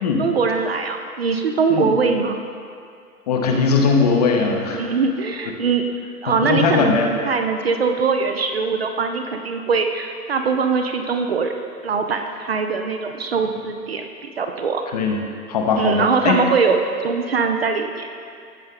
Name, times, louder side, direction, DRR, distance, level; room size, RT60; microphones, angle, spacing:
voice 1, 0.2-2.4 4.7-5.8 6.2-11.5 11.8-14.1 14.4-14.8 15.8-18.1, right 5 dB, 40° right, 5 dB, 0.5 m, -22 dB
voice 2, 3.3-4.8 6.4-7.1 14.9-15.2 15.5-16.4, left 4 dB, 25° left, 2 dB, 0.7 m, -19 dB
15.0 x 5.3 x 3.7 m, 2.3 s
figure-of-eight pair, 120°, 47 cm